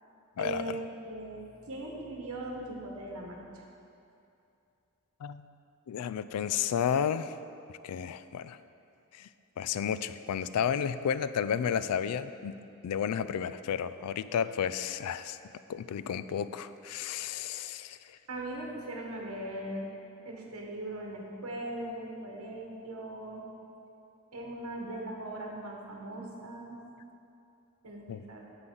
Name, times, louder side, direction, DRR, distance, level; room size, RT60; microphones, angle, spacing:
voice 1, 0.4-3.6 18.3-19.9 20.2-23.4 24.3-26.8 27.8-28.4, right 1 dB, 70° right, -1 dB, 1.3 m, -39 dB
voice 2, 5.9-7.3 7.8-8.6 9.1-9.3 9.6-12.6 12.8-15.4 15.7-18.0 28.1-28.2, left 8 dB, 90° left, 14 dB, 0.3 m, -32 dB
9.6 x 7.5 x 3.9 m, 2.6 s
head